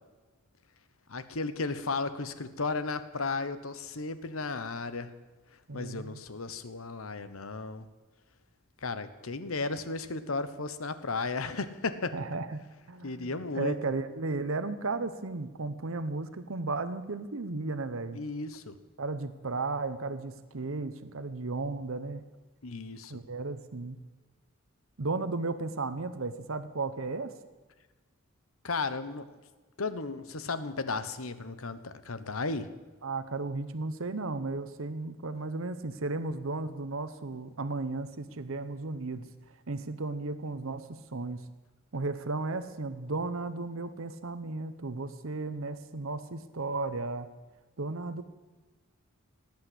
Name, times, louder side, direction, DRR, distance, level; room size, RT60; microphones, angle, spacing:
voice 1, 1.1-5.1 5.7-7.9 8.8-12.1 13.0-13.8 18.1-18.8 22.6-23.2 28.6-29.3 29.8-32.7, left 3 dB, 85° left, 12 dB, 1.1 m, -34 dB
voice 2, 5.7-6.2 12.1-12.6 12.9-18.2 19.0-22.2 23.1-24.0 25.0-27.3 33.0-39.2 39.7-41.4 41.9-47.3 47.8-48.2, right 3 dB, 70° right, 11 dB, 0.9 m, -34 dB
18.0 x 8.8 x 8.0 m, 1.3 s
head